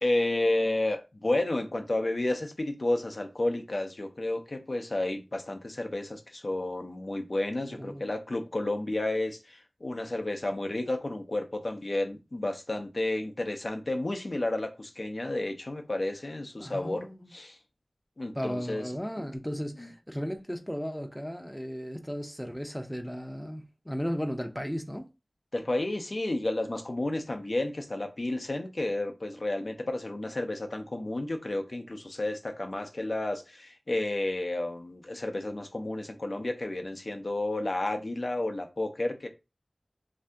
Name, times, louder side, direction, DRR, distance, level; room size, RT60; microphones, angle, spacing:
voice 1, 0.0-17.6 18.2-19.3 19.8-19.9 25.5-39.3, left 2 dB, 60° left, 0.5 m, -31 dB
voice 2, 7.7-8.1 16.6-17.3 18.3-25.0, equal, 5° left, 0.5 m, -35 dB
2.7 x 2.6 x 3.4 m
wide cardioid pair, 55°, 0 cm